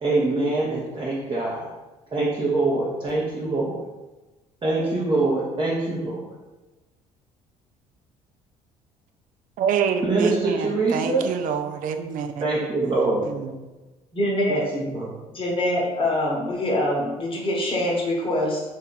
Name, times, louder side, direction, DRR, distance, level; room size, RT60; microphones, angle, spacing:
voice 1, 0.0-1.7 2.1-3.8 4.6-6.2 10.0-11.2 12.4-13.3 14.5-15.1, right 3 dB, 25° right, -5 dB, 0.9 m, -24 dB
voice 2, 9.6-12.5 12.8-12.9 13.2-13.5, right 7 dB, 45° right, 7 dB, 0.4 m, -26 dB
voice 3, 14.1-14.6 15.4-18.6, left 1 dB, 30° left, -3 dB, 1.1 m, -24 dB
3.2 x 2.6 x 3.9 m, 1.1 s
figure-of-eight pair, 50°, 19 cm